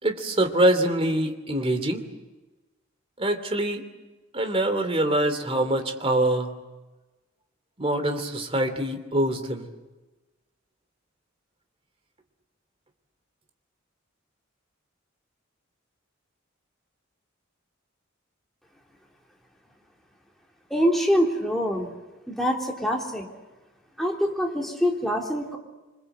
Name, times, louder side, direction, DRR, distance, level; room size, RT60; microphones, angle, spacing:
voice 1, 0.0-2.0 3.2-3.8 4.3-6.5 7.8-9.6, right 1 dB, 30° right, 7 dB, 2.8 m, -24 dB
voice 2, 20.7-21.9 22.3-23.3 24.0-25.6, equal, ahead, -1 dB, 3.5 m, -24 dB
26.5 x 25.0 x 8.0 m, 1.1 s
head